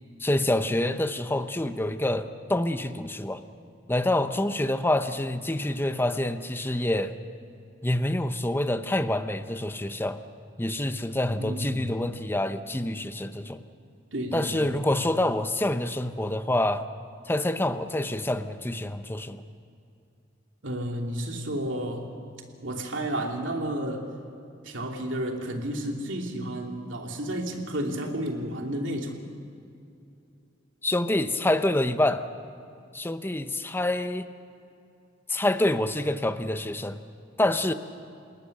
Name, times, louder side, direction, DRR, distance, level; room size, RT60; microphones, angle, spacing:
voice 1, 0.2-3.4 3.9-7.1 7.8-10.2 10.6-13.6 14.3-16.8 17.3-19.4 30.8-32.3 32.9-34.3 35.3-37.0 37.4-37.7, left 1 dB, 10° left, 10 dB, 0.8 m, -27 dB
voice 2, 11.4-11.9 14.1-14.7 20.6-22.1 22.6-24.1 24.6-29.2, right 1 dB, 85° right, 2 dB, 2.9 m, -31 dB
29.5 x 19.0 x 6.7 m, 2.6 s
head